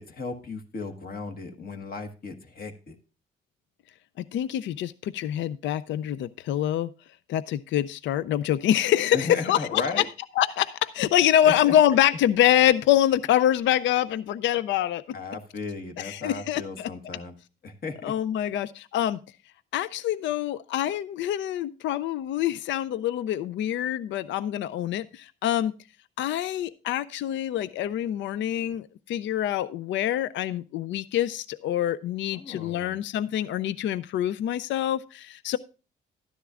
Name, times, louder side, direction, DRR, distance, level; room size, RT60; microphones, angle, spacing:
voice 1, 0.0-3.0 9.1-10.1 11.4-11.7 15.1-17.3 17.6-18.1 32.3-33.0, left 4 dB, 50° left, 5 dB, 1.4 m, -35 dB
voice 2, 4.3-6.9 7.3-10.0 10.4-15.0 16.0-16.9 18.0-19.2 19.7-25.7 26.2-35.6, left 11 dB, 70° left, 17 dB, 0.4 m, -25 dB
12.5 x 10.0 x 2.4 m, 0.33 s
cardioid pair, 90°, 20 cm